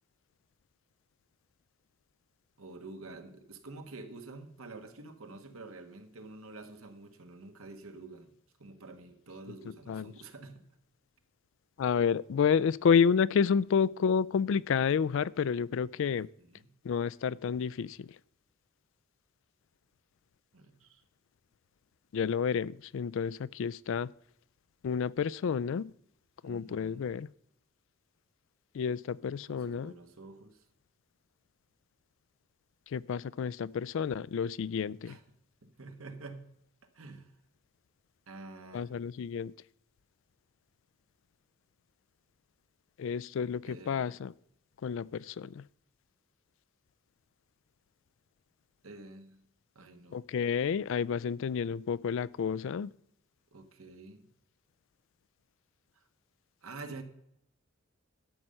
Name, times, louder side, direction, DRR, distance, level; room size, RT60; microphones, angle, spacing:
voice 1, 2.6-8.3 8.6-10.6 16.1-16.7 20.5-21.0 26.4-27.1 29.4-30.6 35.0-35.2 35.6-36.4 36.9-37.3 38.3-38.9 43.6-44.1 48.8-49.5 49.7-50.2 53.5-54.3 55.9-56.0 56.6-57.0, right 3 dB, 85° right, 1.4 m, -48 dB
voice 2, 11.8-16.3 16.8-18.1 22.1-24.1 24.8-25.9 26.4-27.3 28.7-29.9 32.9-35.2 38.7-39.5 43.0-44.3 44.8-45.6 50.1-52.9, left 6 dB, 65° left, 0.3 m, -30 dB
12.5 x 5.5 x 7.6 m
head